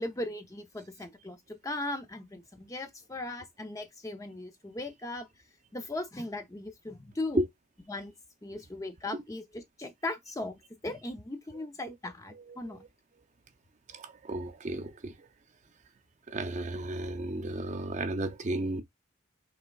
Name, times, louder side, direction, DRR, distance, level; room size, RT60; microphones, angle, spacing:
voice 1, 0.0-5.3 5.7-7.4 7.9-8.1 8.4-12.8, left 2 dB, 15° left, 0.5 m, -38 dB
voice 2, 12.3-12.8 13.9-15.3 16.3-18.8, right 1 dB, 35° right, 0.5 m, -33 dB
5.5 x 3.6 x 2.2 m
head